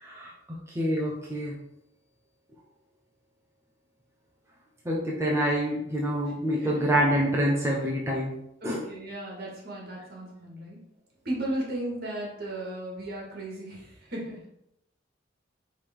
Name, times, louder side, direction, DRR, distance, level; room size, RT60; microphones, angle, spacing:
voice 1, 0.0-0.3 0.7-1.5 4.8-8.3 8.6-8.8, equal, 15° right, -4 dB, 0.9 m, -26 dB
voice 2, 6.6-7.0 8.6-10.8 11.2-14.4, right 1 dB, 60° right, -3 dB, 2.2 m, -35 dB
5.1 x 3.6 x 5.3 m, 0.79 s
head